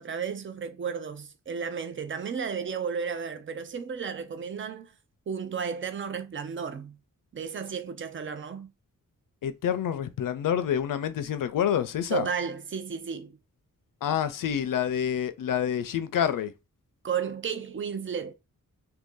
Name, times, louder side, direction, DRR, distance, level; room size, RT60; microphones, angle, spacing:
voice 1, 0.0-4.9 5.3-7.0 7.3-8.7 12.1-13.4 17.0-18.3, right 6 dB, 40° right, 0.5 m, -33 dB
voice 2, 9.4-12.3 14.0-16.5, left 9 dB, 85° left, 0.5 m, -27 dB
2.8 x 2.6 x 3.7 m
wide cardioid pair, 165°, 32 cm